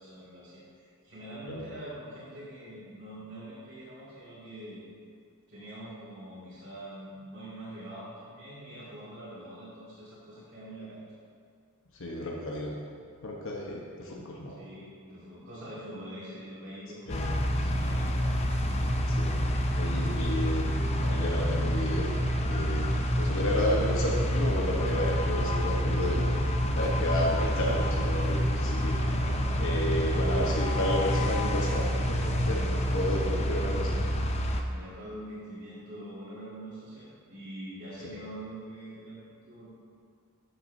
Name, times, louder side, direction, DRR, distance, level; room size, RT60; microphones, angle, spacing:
voice 1, 0.0-4.8 5.5-11.0 14.5-18.2 28.6-29.6 33.5-33.7 34.0-39.7, right 1 dB, 50° right, -12 dB, 2.3 m, -44 dB
voice 2, 12.0-12.8 13.2-14.6 17.1-17.3 19.1-19.4 19.8-20.7 21.0-22.1 22.5-22.9 23.2-28.9 29.6-33.9, left 1 dB, 60° left, -2 dB, 1.0 m, -32 dB
sound 1, 17.1-34.6, equal, 30° left, 0.6 m, -29 dB
sound 2, 17.2-33.2, equal, 25° right, 2.2 m, -33 dB
13.5 x 6.8 x 2.7 m, 2.2 s
head